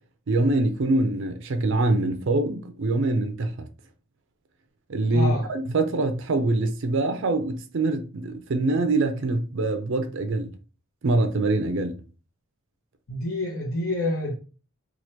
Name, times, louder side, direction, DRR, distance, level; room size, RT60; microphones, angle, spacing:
voice 1, 0.3-3.7 4.9-10.5 11.0-12.0, right 2 dB, 60° right, 0.5 m, -24 dB
voice 2, 5.1-5.5 13.1-14.3, left 1 dB, 75° left, 0.8 m, -27 dB
2.9 x 2.4 x 4.3 m
head